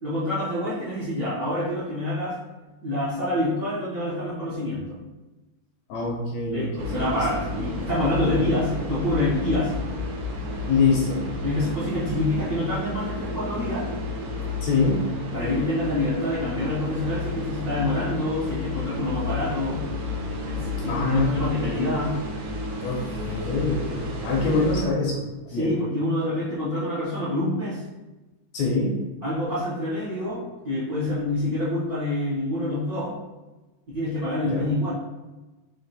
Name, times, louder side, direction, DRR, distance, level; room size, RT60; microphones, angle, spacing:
voice 1, 0.0-2.4 2.8-5.0 6.5-9.7 11.4-13.9 15.3-19.9 20.4-22.2 23.4-23.6 24.4-24.6 25.5-27.8 29.2-33.2 33.9-34.9, left 1 dB, 65° right, -11 dB, 0.9 m, -27 dB
voice 2, 5.9-7.2 10.7-11.2 14.6-15.0 20.9-21.9 22.8-25.7 28.5-28.9 34.4-34.7, left 3 dB, 75° left, -2 dB, 1.7 m, -25 dB
sound 1, 6.8-24.8, left 2 dB, 85° right, 2.3 m, -31 dB
5.2 x 2.4 x 4.0 m, 1.1 s
omnidirectional pair, 3.7 m